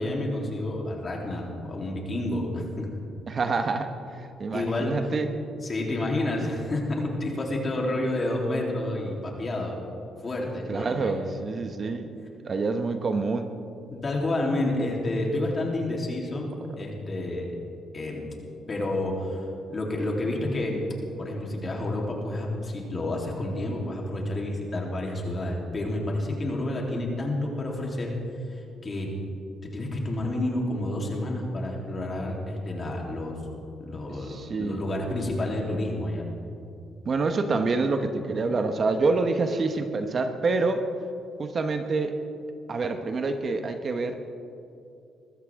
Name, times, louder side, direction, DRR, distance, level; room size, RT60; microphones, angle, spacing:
voice 1, 0.0-2.9 4.5-4.9 5.6-9.8 10.2-11.2 13.9-16.5 16.8-17.5 17.9-18.2 18.7-19.4 19.7-20.8 21.2-28.1 28.5-29.1 29.7-33.4 33.8-36.3, left 1 dB, 35° left, -1 dB, 3.6 m, -29 dB
voice 2, 3.3-5.3 10.7-12.1 12.4-13.5 34.1-34.8 37.0-40.8 41.4-42.2 42.7-44.2, right 3 dB, 45° right, 7 dB, 1.1 m, -27 dB
21.5 x 14.0 x 3.8 m, 2.6 s
cardioid pair, 90°, 0 cm